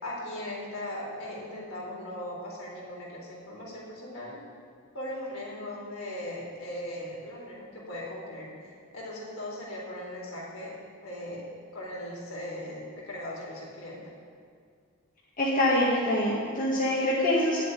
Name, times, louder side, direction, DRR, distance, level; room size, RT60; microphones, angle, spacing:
voice 1, 0.0-4.4 4.9-11.5 11.7-14.0, left 1 dB, 70° left, -4 dB, 3.9 m, -39 dB
voice 2, 15.4-17.6, left 1 dB, 40° left, -6 dB, 1.8 m, -25 dB
10.5 x 7.5 x 9.3 m, 2.2 s
head